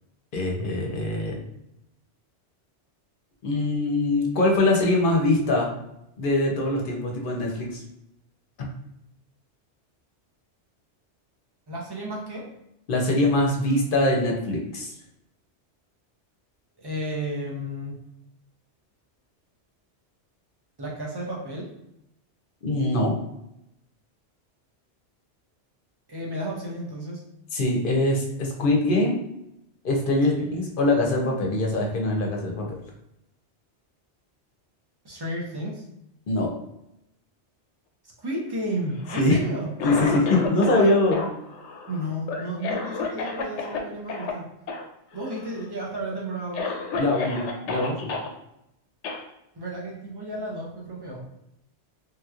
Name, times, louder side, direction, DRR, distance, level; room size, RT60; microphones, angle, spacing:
voice 1, 0.3-1.4 3.4-5.7 6.2-7.8 8.6-8.7 12.9-14.9 22.6-23.1 27.5-29.1 29.8-32.7 36.3-36.5 39.2-39.4 39.8-41.2 46.9-48.1, left 2 dB, 55° left, 0 dB, 0.8 m, -23 dB
voice 2, 11.7-12.5 16.8-18.0 20.8-21.7 26.1-27.2 30.3-30.5 35.0-35.9 38.2-39.7 41.9-44.5 45.1-46.7 49.5-51.2, right 1 dB, 25° right, -3 dB, 0.7 m, -32 dB
Cough, 38.9-40.8 41.1-43.8 44.1-44.3 44.7-44.8 45.1-45.6 46.1-46.2 46.5-48.3 49.0-49.2, left 4 dB, 80° left, 0.9 m, -31 dB
3.2 x 2.9 x 2.4 m, 0.81 s
omnidirectional pair, 1.2 m